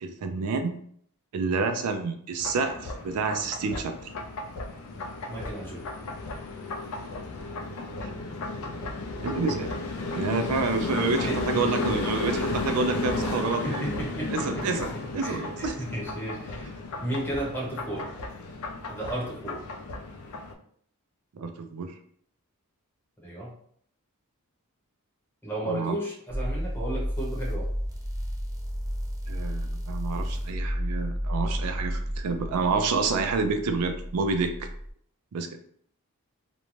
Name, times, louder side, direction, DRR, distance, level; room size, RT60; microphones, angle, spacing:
voice 1, 0.0-0.8 1.3-3.9 9.2-9.7 10.1-13.8 14.3-15.8 21.4-22.0 25.7-26.0 29.3-34.7 35.3-35.6, right 4 dB, 80° right, 6 dB, 0.4 m, -28 dB
sound 1, 2.4-20.5, left 2 dB, 70° left, 0.4 m, -33 dB
voice 2, 5.3-5.9 11.2-11.9 13.5-14.8 15.2-16.7 17.0-18.1 18.9-19.6 23.2-23.5 25.4-27.7, right 1 dB, 10° left, -4 dB, 0.8 m, -34 dB
sound 2, 26.3-34.9, equal, 15° right, 0.5 m, -32 dB
2.6 x 2.2 x 3.0 m, 0.63 s
head